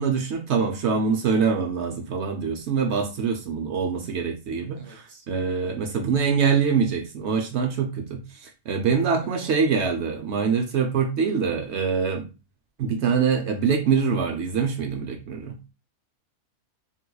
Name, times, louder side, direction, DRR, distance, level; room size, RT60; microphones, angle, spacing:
voice 1, 0.0-12.3 12.8-15.6, right 6 dB, 60° right, 0.8 m, -24 dB
voice 2, 4.7-5.3 9.2-9.6, right 2 dB, 25° right, 0.7 m, -47 dB
3.6 x 2.9 x 2.2 m
omnidirectional pair, 1.5 m